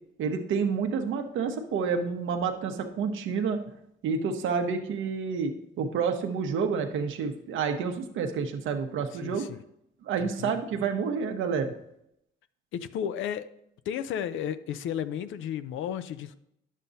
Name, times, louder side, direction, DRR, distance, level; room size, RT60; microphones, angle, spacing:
voice 1, 0.2-3.6 4.0-5.5 5.8-9.4 10.0-11.7, right 5 dB, 80° right, 6 dB, 1.0 m, -29 dB
voice 2, 9.1-9.6 10.2-10.5 12.7-13.5 13.9-16.4, left 9 dB, 80° left, 12 dB, 0.5 m, -33 dB
9.9 x 7.4 x 2.7 m, 0.78 s
cardioid pair, 90°, 20 cm